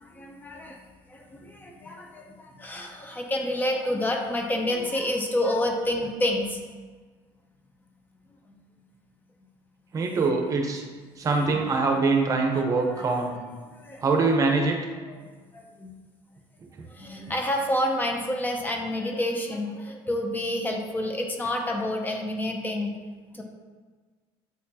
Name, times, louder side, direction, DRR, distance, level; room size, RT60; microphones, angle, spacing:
voice 1, 0.0-0.8 1.1-6.6 11.5-11.9 12.5-13.0 13.8-14.0 15.1-15.2 15.5-15.9 17.0-22.9 23.3-23.4, left 1 dB, 15° left, 2 dB, 0.6 m, -29 dB
voice 2, 9.9-10.8 11.2-13.4 14.0-14.8, right 3 dB, 30° right, 2 dB, 0.9 m, -23 dB
8.3 x 4.2 x 2.8 m, 1.4 s
cardioid pair, 130°, 11 cm